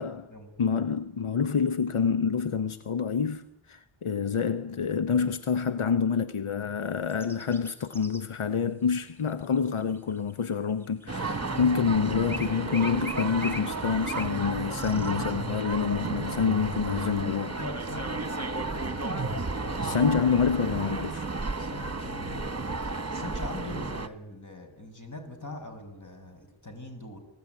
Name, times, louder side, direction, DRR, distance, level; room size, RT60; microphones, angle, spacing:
voice 1, 0.0-0.5 17.6-20.0 21.6-27.2, left 2 dB, 35° left, 6.4 m, -42 dB
voice 2, 0.6-17.6 19.8-21.3, left 6 dB, 80° left, 1.0 m, -27 dB
sound 1, 7.1-8.2 9.1-11.0 12.3-14.4 14.7-15.1, left 1 dB, 5° left, 2.2 m, -41 dB
sound 2, 11.1-24.1, right 3 dB, 30° right, 1.5 m, -33 dB
29.0 x 20.0 x 9.4 m
wide cardioid pair, 60°, 49 cm